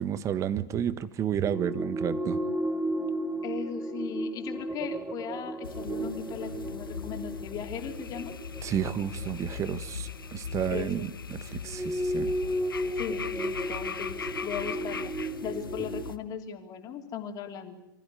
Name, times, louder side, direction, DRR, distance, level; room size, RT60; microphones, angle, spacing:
voice 1, 0.0-2.4 8.6-12.3, right 9 dB, 25° right, 15 dB, 1.4 m, -31 dB
sound 1, 1.4-10.7 11.6-16.1, right 1 dB, 10° right, 2.1 m, -34 dB
voice 2, 3.4-8.4 10.7-11.1 12.9-15.1 15.4-17.8, left 8 dB, 30° left, 4 dB, 3.1 m, -38 dB
sound 2, 5.6-16.2, left 6 dB, 80° left, 1.4 m, -39 dB
25.5 x 15.0 x 9.4 m, 0.90 s
figure-of-eight pair, 105°, 12 cm